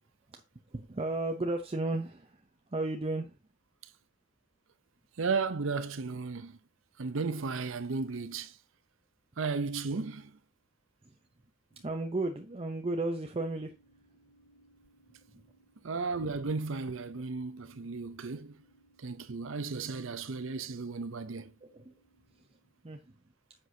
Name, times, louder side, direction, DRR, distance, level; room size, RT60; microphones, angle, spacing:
voice 1, 0.7-3.4 11.0-11.2 11.8-13.7 15.3-15.4 17.2-17.3 21.6-21.9 22.3-22.6 22.8-23.0, right 2 dB, 30° right, 0.6 m, -34 dB
voice 2, 5.2-6.6 7.0-8.5 9.4-10.3 15.8-18.6 19.0-21.5, right 4 dB, 75° right, 0.7 m, -34 dB
sound 1, 11.7-22.8, right 1 dB, 80° left, 2.7 m, -67 dB
9.4 x 6.0 x 2.7 m
head